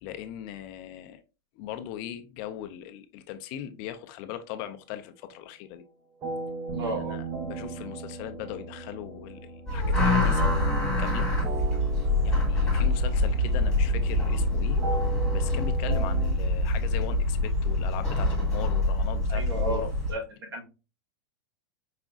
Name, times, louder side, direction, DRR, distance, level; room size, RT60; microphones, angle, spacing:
voice 1, 0.0-1.2 1.6-5.8 6.8-10.5 11.0-11.3 12.2-14.8 15.3-19.9, left 11 dB, 35° left, 0.4 m, -39 dB
sound 1, 6.2-16.4, right 2 dB, 20° right, 0.7 m, -39 dB
sound 2, 6.7-12.9, right 5 dB, 40° right, 1.4 m, -42 dB
voice 2, 6.7-7.2 19.3-20.2 20.5-20.6, right 1 dB, 80° right, 1.8 m, -33 dB
sound 3, 9.7-20.1, left 1 dB, 5° left, 2.0 m, -25 dB
4.9 x 3.6 x 2.4 m
supercardioid pair, 160°, 13 cm